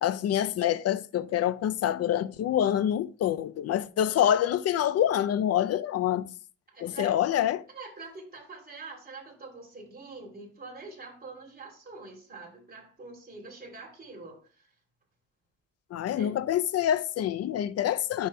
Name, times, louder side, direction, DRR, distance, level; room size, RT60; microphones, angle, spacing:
voice 1, 0.0-6.3 6.8-7.6 15.9-18.3, left 10 dB, 55° left, 0.5 m, -26 dB
voice 2, 6.7-7.2 7.7-14.7 16.2-16.4, right 3 dB, 30° right, 3.1 m, -45 dB
10.0 x 6.4 x 2.2 m
cardioid pair, 90°, 30 cm